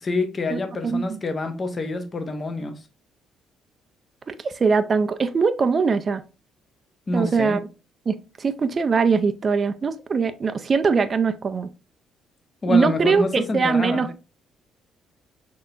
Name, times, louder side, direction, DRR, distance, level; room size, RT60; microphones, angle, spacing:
voice 1, 0.0-2.8 7.1-7.6 12.6-14.1, left 2 dB, 25° left, 0.7 m, -27 dB
voice 2, 0.5-1.2 4.3-6.2 7.1-7.6 8.1-11.7 12.7-14.1, right 5 dB, 30° right, 0.4 m, -22 dB
5.9 x 2.8 x 2.5 m
cardioid pair, 150°, 0 cm